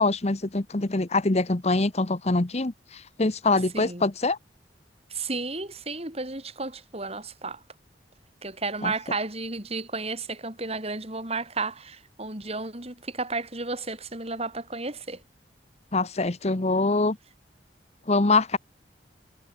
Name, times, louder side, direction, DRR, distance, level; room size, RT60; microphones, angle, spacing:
voice 1, 0.0-4.4 8.8-8.9 15.9-17.2 18.1-18.6, left 3 dB, 35° left, 1.0 m, -24 dB
voice 2, 5.1-7.6 8.4-15.2, right 3 dB, 35° right, 7.7 m, -33 dB
head